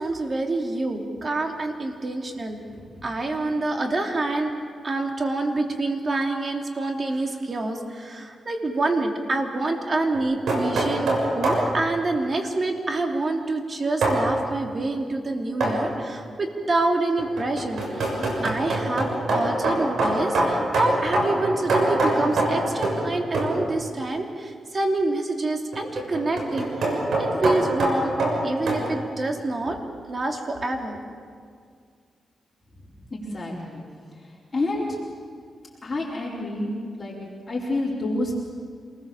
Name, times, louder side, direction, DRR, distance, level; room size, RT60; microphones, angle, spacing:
voice 1, 0.0-2.6 3.0-4.5 4.8-18.1 18.4-28.1 28.4-29.8 30.1-31.0, right 2 dB, 40° right, 2 dB, 3.1 m, -27 dB
sound 1, 10.1-11.7 14.0-14.2 15.6-15.9 17.2-23.1 23.3-23.6 25.7-28.8, right 2 dB, 80° right, 6.4 m, -24 dB
voice 2, 33.1-33.8 34.5-35.0 35.8-37.1 37.5-38.4, left 2 dB, 30° left, -6 dB, 4.7 m, -28 dB
27.5 x 20.5 x 7.3 m, 2.1 s
cardioid pair, 95°, 0 cm